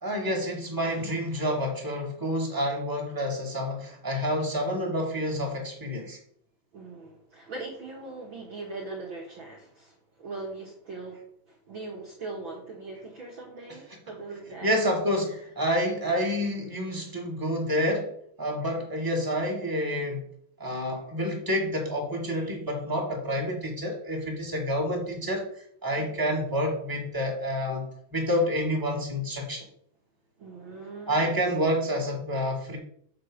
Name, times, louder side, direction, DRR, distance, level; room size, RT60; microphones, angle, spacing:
voice 1, 0.0-6.2 14.6-18.1 18.4-20.2 20.6-29.7 31.1-32.8, equal, 5° right, -1 dB, 1.9 m, -28 dB
voice 2, 6.7-14.8 15.2-15.4 26.0-26.2 30.4-31.3, right 3 dB, 50° right, -1 dB, 1.6 m, -40 dB
6.8 x 6.7 x 6.4 m, 0.65 s
omnidirectional pair, 3.8 m